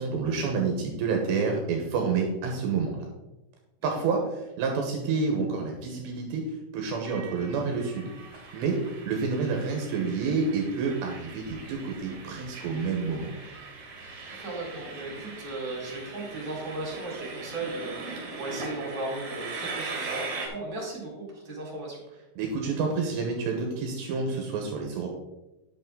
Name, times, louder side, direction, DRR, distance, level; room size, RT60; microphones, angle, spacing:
voice 1, 0.0-3.1 3.8-8.1 8.5-8.8 9.1-13.3 22.4-25.1, right 4 dB, 75° right, 1 dB, 3.0 m, -29 dB
Train, 7.1-20.5, right 3 dB, 55° right, 2.6 m, -40 dB
voice 2, 14.3-22.0, right 2 dB, 15° right, -4 dB, 3.4 m, -36 dB
9.8 x 8.1 x 3.7 m, 1.0 s
omnidirectional pair, 5.4 m